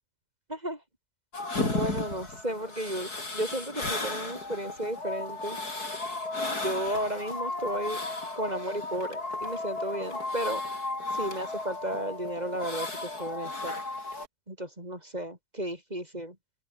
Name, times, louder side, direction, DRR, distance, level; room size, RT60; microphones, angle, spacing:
voice 1, 0.5-0.8 1.7-5.6 6.6-8.0 8.4-10.6 11.1-13.7 14.5-16.4, right 1 dB, 25° right, 6.1 m, -34 dB
sound 1, 1.3-14.3, left 2 dB, 70° left, 6.0 m, -34 dB
open air
omnidirectional pair, 1.7 m